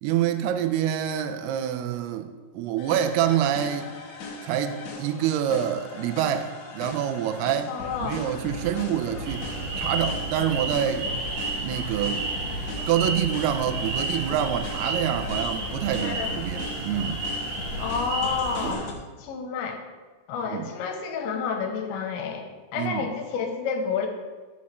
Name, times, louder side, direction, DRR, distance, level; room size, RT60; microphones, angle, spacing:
voice 1, 0.0-2.3 2.5-3.9 4.4-7.7 8.0-9.5 9.8-11.1 11.6-12.3 12.9-17.2 20.4-20.7 22.8-23.1, right 10 dB, 85° right, 2.3 m, -26 dB
sound 1, 2.8-18.9, left 3 dB, 65° left, 1.7 m, -37 dB
voice 2, 7.7-8.2 16.0-16.3 17.8-18.9 19.2-19.8 20.3-24.1, left 6 dB, 85° left, 3.1 m, -30 dB
sound 2, 9.3-18.7, right 3 dB, 65° right, 3.6 m, -32 dB
12.5 x 7.1 x 3.2 m
omnidirectional pair, 5.3 m